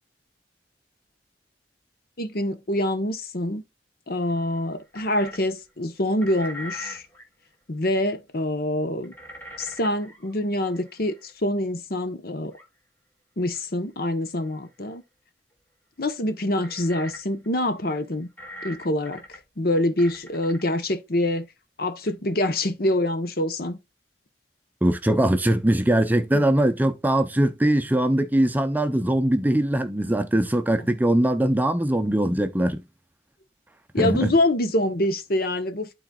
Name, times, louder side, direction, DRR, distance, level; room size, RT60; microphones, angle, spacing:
voice 1, 2.2-3.6 4.1-7.0 7.7-9.1 9.6-12.5 13.4-15.0 16.0-18.3 18.6-21.5 21.8-23.8 33.9-35.9, left 1 dB, 55° left, 1.1 m, -25 dB
sound 1, 4.1-5.5 6.1-7.2 8.1-8.2 9.0-11.3 12.4-12.7 13.5-13.6 14.4-14.7 16.6-17.5 17.8-17.9 18.4-19.4 20.0-20.6 22.1-22.2 22.6-22.7 22.9-23.0, equal, 10° left, 2.3 m, -42 dB
voice 2, 24.8-32.8 34.0-34.3, right 1 dB, 10° right, 0.6 m, -21 dB
12.0 x 4.0 x 2.4 m
head